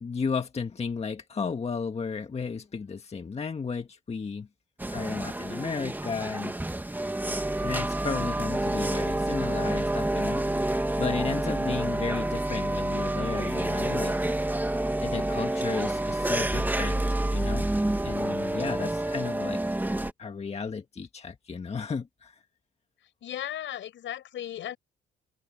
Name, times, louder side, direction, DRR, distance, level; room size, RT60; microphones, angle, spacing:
voice 1, 0.0-4.5 4.9-6.6 7.6-14.3 15.0-17.7 18.0-19.6 19.9-22.3, left 5 dB, 30° left, 1.7 m, -34 dB
sound 1, 4.8-20.1, right 1 dB, 10° right, 2.1 m, -28 dB
voice 2, 23.2-24.8, left 11 dB, 70° left, 6.2 m, -36 dB
cardioid pair, 90°, 20 cm